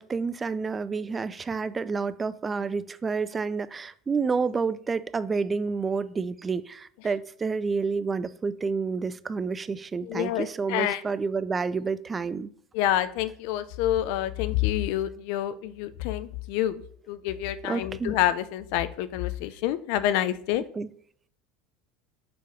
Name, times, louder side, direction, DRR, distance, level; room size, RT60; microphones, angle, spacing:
voice 1, 0.0-12.5 17.6-18.2 20.7-20.9, right 4 dB, 20° right, 0.3 m, -29 dB
voice 2, 10.0-11.0 12.7-16.8 17.1-20.6, left 12 dB, 70° left, 0.5 m, -27 dB
6.8 x 3.2 x 5.0 m
supercardioid pair, 115°, 0 cm